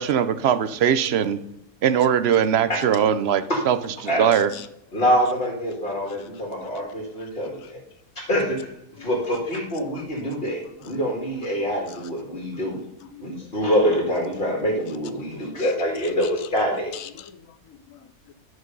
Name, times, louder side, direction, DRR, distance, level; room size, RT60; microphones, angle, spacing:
voice 1, 0.0-1.4 1.8-3.8 4.2-4.5, right 8 dB, 60° right, 12 dB, 0.7 m, -20 dB
voice 2, 4.3-4.7 6.1-6.2 6.6-6.9 7.6-7.7 9.0-9.1 9.9-10.4 10.8-10.9 11.9-12.0 13.0-13.5 15.3-15.7 16.0-16.1 16.9-18.3, left 9 dB, 75° left, 13 dB, 1.1 m, -43 dB
voice 3, 4.9-7.8 8.2-8.7 8.9-12.8 13.2-16.9, equal, 40° left, -2 dB, 2.3 m, -25 dB
11.0 x 6.4 x 5.3 m, 0.79 s
omnidirectional pair, 1.5 m